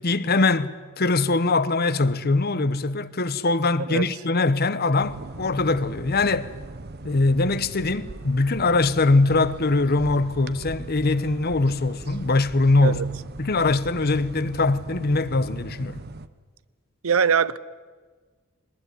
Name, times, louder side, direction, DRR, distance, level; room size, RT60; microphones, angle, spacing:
voice 1, 0.0-6.5 7.0-13.0 13.4-16.0, left 3 dB, 45° left, 0.9 m, -22 dB
sound 1, 5.0-16.3, right 2 dB, 50° right, 1.0 m, -39 dB
voice 2, 17.0-17.6, right 6 dB, 75° right, 0.8 m, -21 dB
22.0 x 20.0 x 9.9 m
head